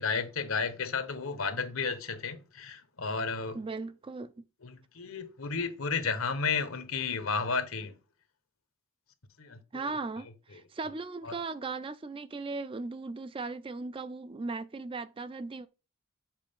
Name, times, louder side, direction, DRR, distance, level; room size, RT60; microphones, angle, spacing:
voice 1, 0.0-3.6 4.6-7.9 9.4-9.8 11.2-11.3, left 5 dB, 80° left, 1.1 m, -32 dB
voice 2, 3.5-4.3 9.7-15.7, right 3 dB, 25° right, 0.4 m, -37 dB
7.4 x 4.6 x 3.6 m
head